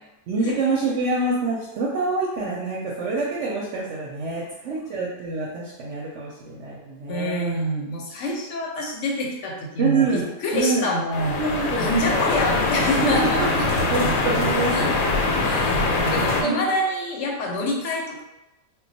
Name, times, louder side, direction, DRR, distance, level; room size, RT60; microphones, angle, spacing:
voice 1, 0.3-7.5 9.8-10.3 10.5-10.9 11.4-12.2 13.0-13.5 13.8-14.7 16.4-16.6, right 3 dB, 65° right, -5 dB, 0.8 m, -26 dB
voice 2, 7.1-11.4 11.7-13.5 14.7-14.9 15.4-15.8 16.1-18.2, left 1 dB, 65° left, -1 dB, 0.9 m, -26 dB
sound 1, 11.1-16.4, left 2 dB, 90° left, 1.0 m, -23 dB
2.3 x 2.2 x 3.9 m, 0.94 s
omnidirectional pair, 1.4 m